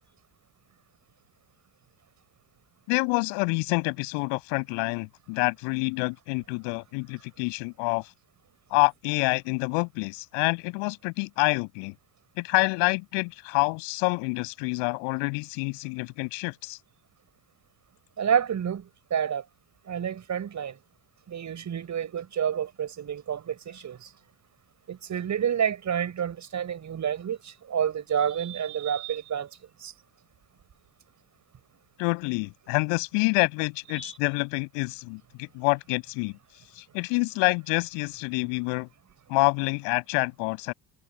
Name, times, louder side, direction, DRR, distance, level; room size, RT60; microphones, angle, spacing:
voice 1, 2.9-8.1 8.7-11.9 12.4-16.8 32.0-36.4 36.8-38.9 39.3-40.7, left 35 dB, 60° left, 7.8 m, -27 dB
voice 2, 18.2-19.4 19.8-20.8 21.3-24.1 24.9-29.5 29.8-29.9 33.9-34.1, right 8 dB, 35° right, 4.8 m, -29 dB
figure-of-eight pair, 65°, 49 cm